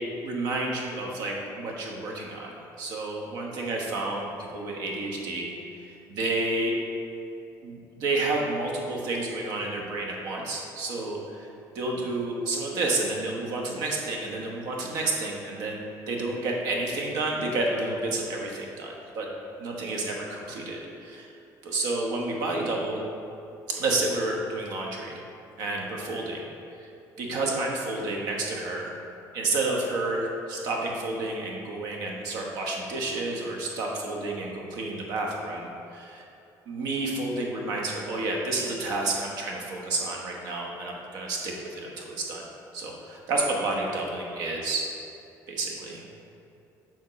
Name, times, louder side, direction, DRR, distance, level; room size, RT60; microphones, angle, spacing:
voice 1, 0.2-6.8 7.6-11.5 11.7-15.8 16.1-19.3 19.6-21.3 21.6-23.0 23.7-25.2 25.6-26.4 27.2-28.9 29.3-36.2 36.7-42.4 42.7-44.9 45.5-46.0, right 2 dB, 65° right, 0 dB, 1.1 m, -30 dB
7.1 x 6.0 x 3.1 m, 2.8 s
cardioid pair, 175°, 7 cm